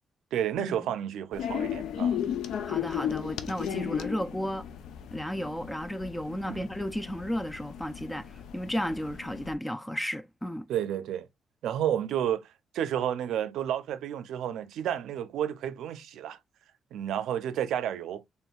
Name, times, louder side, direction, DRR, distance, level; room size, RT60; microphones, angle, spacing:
voice 1, 0.3-2.2 3.7-3.8 6.5-6.7 10.7-11.3 11.6-12.4 12.7-16.4 16.9-18.2, right 10 dB, 85° right, 0.5 m, -31 dB
sound 1, 1.3-9.5, left 9 dB, 85° left, 0.5 m, -35 dB
voice 2, 2.6-4.7 5.1-10.7, equal, 5° left, 0.3 m, -33 dB
4.3 x 3.4 x 2.3 m
cardioid pair, 135°, 0 cm